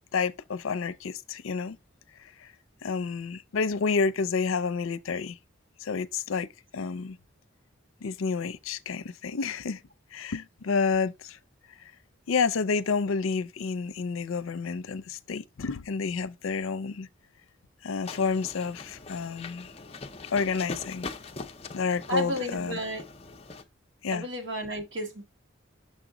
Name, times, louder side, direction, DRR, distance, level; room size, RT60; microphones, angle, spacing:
voice 1, 0.1-1.8 2.4-2.5 2.8-5.4 5.8-6.5 6.7-7.2 8.0-9.8 10.1-11.4 12.3-17.1 17.8-19.7 20.3-21.1 21.7-22.8 24.0-24.3, left 5 dB, 80° left, 0.5 m, -29 dB
sound 1, 18.0-23.6, left 3 dB, 30° left, 0.5 m, -42 dB
voice 2, 22.1-23.0 24.1-25.2, equal, 60° right, 1.7 m, -32 dB
6.6 x 3.9 x 3.8 m
head